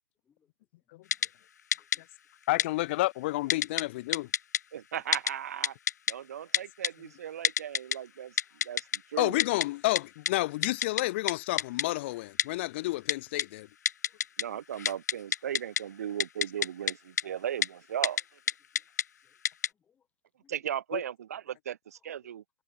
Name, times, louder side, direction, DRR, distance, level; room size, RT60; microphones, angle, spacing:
Typing, 1.1-1.3 1.7-2.0 2.6-2.7 3.5-3.8 4.1-4.6 5.1-5.3 5.6-6.1 6.5-6.9 7.4-8.0 8.4-9.0 9.4-9.7 10.0-10.1 10.3-10.4 10.6-11.0 11.3-11.4 11.6-11.8 12.4-12.5 13.1-13.4 13.9-14.4 14.7-15.8 16.2-16.9 17.2-17.3 17.6-17.7 18.0-18.2 18.5-19.0 19.4-19.7, left 8 dB, 60° left, 1.4 m, -27 dB
voice 1, 1.8-2.1 6.1-6.2 7.8-8.8 14.1-14.2 15.6-15.7 18.7-19.4 19.7-20.1 20.4-20.6, left 7 dB, 15° left, 5.3 m, -73 dB
voice 2, 2.5-4.3 9.2-13.7 20.9-21.0, left 19 dB, 40° left, 2.2 m, -30 dB
voice 3, 4.7-5.7 6.1-8.3 8.6-9.4 14.4-18.2 20.5-22.4, right 10 dB, 55° right, 3.1 m, -37 dB
hypercardioid pair, 135°, 10 cm